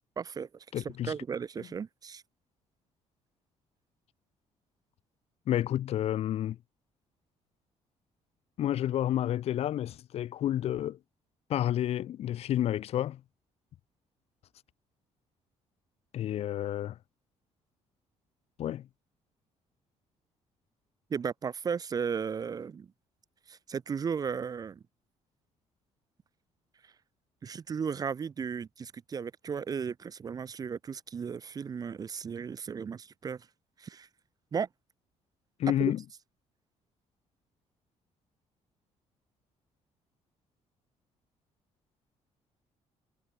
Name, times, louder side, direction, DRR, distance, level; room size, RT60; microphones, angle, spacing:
voice 1, 0.2-0.5 0.7-2.2 21.1-22.9 23.5-24.8 27.4-33.4 33.8-34.1 34.5-34.7 35.8-35.9, right 6 dB, 30° right, 0.6 m, -35 dB
voice 2, 0.7-1.1 1.6-1.7 5.5-6.6 8.6-11.0 11.5-13.2 16.1-17.0 18.6-18.9 35.6-36.0, left 12 dB, 60° left, 0.6 m, -30 dB
cardioid pair, 120°, 12 cm